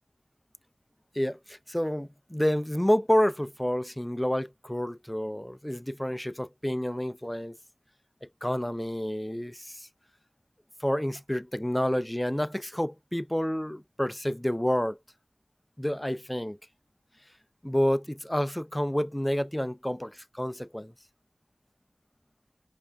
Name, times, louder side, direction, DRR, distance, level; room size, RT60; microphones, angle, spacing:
voice 1, 1.2-7.6 8.4-9.9 10.8-15.0 15.8-16.6 17.6-20.1 20.4-20.9, equal, 10° left, 0.3 m, -29 dB
4.9 x 2.3 x 2.2 m
wide cardioid pair, 45°, 0 cm